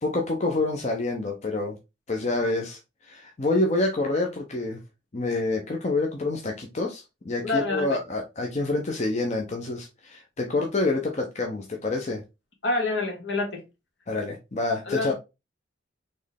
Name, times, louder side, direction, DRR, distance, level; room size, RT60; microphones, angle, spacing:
voice 1, 0.0-1.8 2.1-4.8 5.1-12.2 14.1-15.1, left 2 dB, 35° left, 0.7 m, -27 dB
voice 2, 7.4-8.0 12.6-13.6 14.9-15.1, left 3 dB, 70° left, 1.6 m, -27 dB
4.3 x 3.1 x 3.4 m
head